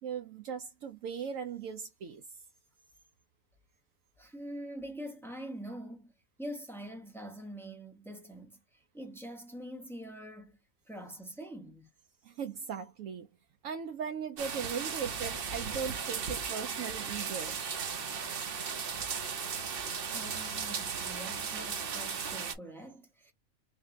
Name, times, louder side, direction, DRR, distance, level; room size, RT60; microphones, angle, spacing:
voice 1, 0.0-2.2 12.2-13.3 13.6-17.6, right 7 dB, 75° right, 1.0 m, -38 dB
voice 2, 4.2-6.1 6.4-8.6 8.9-10.6 10.9-11.9 20.1-23.3, equal, ahead, 0.6 m, -44 dB
sound 1, 14.4-22.5, right 6 dB, 50° right, 0.8 m, -36 dB
3.5 x 2.8 x 3.5 m
omnidirectional pair, 1.5 m